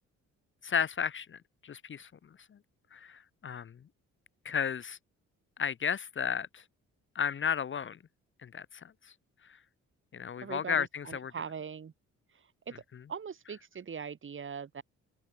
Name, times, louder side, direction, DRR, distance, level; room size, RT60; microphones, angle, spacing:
voice 1, 0.6-2.1 2.9-3.7 4.4-5.0 5.6-6.6 7.1-8.0 8.4-8.7 10.1-11.3, left 7 dB, 40° left, 1.0 m, -33 dB
voice 2, 10.4-11.9 12.7-12.8 13.1-14.8, right 6 dB, 40° right, 3.1 m, -41 dB
open air
cardioid pair, 90°, 30 cm